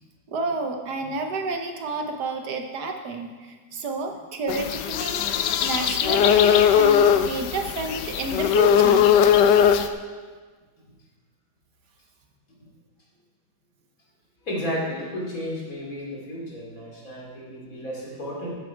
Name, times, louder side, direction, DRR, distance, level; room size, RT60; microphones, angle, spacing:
voice 1, 0.3-9.1, right 3 dB, 65° right, 4 dB, 1.5 m, -30 dB
sound 1, 4.5-9.9, left 8 dB, 80° left, 1.2 m, -19 dB
voice 2, 14.4-18.6, equal, 50° left, -5 dB, 3.6 m, -32 dB
14.5 x 7.8 x 4.5 m, 1.4 s
omnidirectional pair, 1.9 m